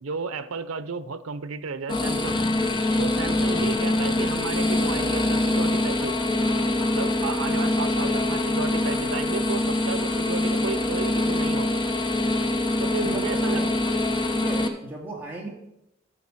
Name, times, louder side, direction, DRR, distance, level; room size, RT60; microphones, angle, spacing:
voice 1, 0.0-2.4 3.0-6.2 6.8-11.8 12.8-13.6, right 5 dB, 85° right, 13 dB, 0.7 m, -33 dB
sound 1, 1.9-14.7, left 1 dB, 20° left, 0.8 m, -24 dB
voice 2, 12.7-13.7 14.0-15.5, right 1 dB, 10° right, -3 dB, 2.3 m, -37 dB
13.0 x 6.8 x 4.2 m, 0.85 s
head